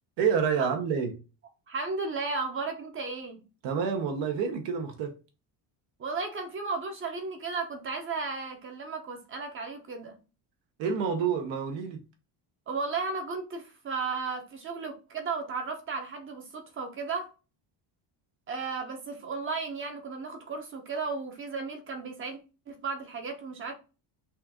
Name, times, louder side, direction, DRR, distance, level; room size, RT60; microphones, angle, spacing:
voice 1, 0.2-1.1 3.6-5.1 10.8-12.0, right 6 dB, 70° right, 1.0 m, -28 dB
voice 2, 1.7-3.4 6.0-10.1 12.7-17.3 18.5-22.4 22.7-23.7, right 4 dB, 25° right, 0.8 m, -34 dB
5.7 x 2.5 x 3.5 m
cardioid pair, 170°, 46 cm